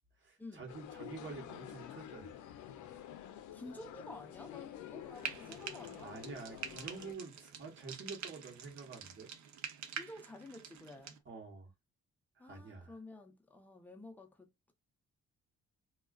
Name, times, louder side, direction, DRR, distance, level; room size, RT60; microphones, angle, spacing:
voice 1, 0.2-2.3 6.0-9.3 11.3-11.7 12.4-13.0, right 4 dB, 40° right, 1.1 m, -48 dB
sound 1, 0.7-7.1, left 11 dB, 80° left, 0.5 m, -49 dB
voice 2, 3.5-6.3 9.9-11.2 12.4-14.7, left 2 dB, 5° left, 0.6 m, -51 dB
Frying (food), 5.1-11.2, right 8 dB, 70° right, 0.6 m, -47 dB
2.3 x 2.3 x 2.3 m
cardioid pair, 90°, 30 cm